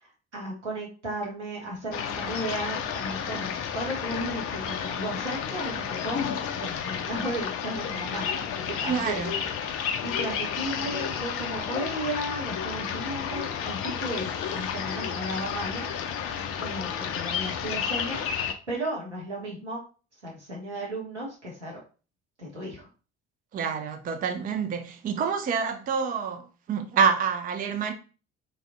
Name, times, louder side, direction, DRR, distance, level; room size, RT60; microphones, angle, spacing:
voice 1, 0.0-6.2 6.5-8.3 8.6-9.7 10.0-15.9 16.6-19.8 20.2-21.8 22.4-22.9, right 1 dB, 90° right, 0.9 m, -35 dB
sound 1, 1.9-18.5, left 7 dB, 45° left, 0.5 m, -31 dB
voice 2, 8.9-9.3 23.5-27.9, right 6 dB, 25° right, 0.5 m, -27 dB
3.2 x 2.4 x 2.6 m
figure-of-eight pair, 50°, 34 cm